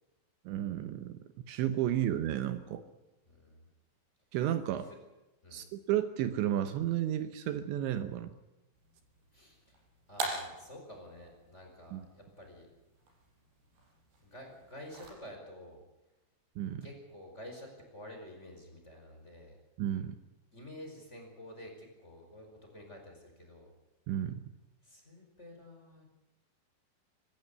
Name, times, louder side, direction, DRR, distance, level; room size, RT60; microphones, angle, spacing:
voice 1, 0.5-1.2 1.5-2.8 4.3-4.9 5.5-8.3 11.9-12.1 16.6-16.9 19.8-20.2 24.1-24.4, right 11 dB, 75° right, 9 dB, 3.1 m, -32 dB
voice 2, 3.3-3.7 4.7-5.0 5.4-5.6 9.3-9.8 10.1-12.7 14.2-15.8 16.8-19.6 20.5-23.7 24.8-26.0, left 1 dB, 15° left, 2 dB, 5.0 m, -50 dB
sound 1, 8.7-15.1, right 3 dB, 55° right, 6.9 m, -44 dB
24.5 x 14.5 x 9.6 m, 1.0 s
omnidirectional pair, 5.6 m